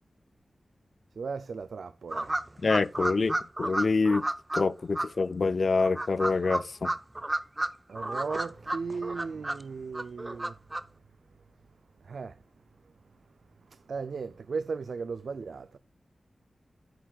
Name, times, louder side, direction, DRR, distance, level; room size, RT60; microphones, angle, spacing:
voice 1, 1.2-2.3 7.9-10.5 12.1-12.3 13.9-15.8, right 5 dB, 80° right, 0.4 m, -36 dB
sound 1, 2.1-4.6 4.9-5.1 5.8-7.7 7.9-9.6 9.9-10.8, right 1 dB, 20° right, 0.6 m, -31 dB
voice 2, 2.6-4.2 4.5-6.9, left 4 dB, 55° left, 0.4 m, -26 dB
10.5 x 9.2 x 2.3 m
wide cardioid pair, 110°, 0 cm